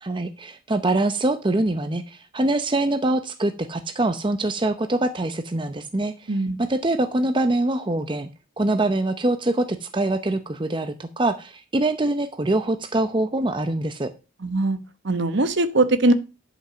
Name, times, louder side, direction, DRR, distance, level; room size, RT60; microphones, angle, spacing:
voice 1, 0.0-8.3 8.6-14.1, right 2 dB, 25° right, 9 dB, 0.7 m, -24 dB
voice 2, 14.4-14.8 15.0-16.1, right 2 dB, 60° right, 11 dB, 1.1 m, -20 dB
11.0 x 5.7 x 6.2 m, 0.31 s
head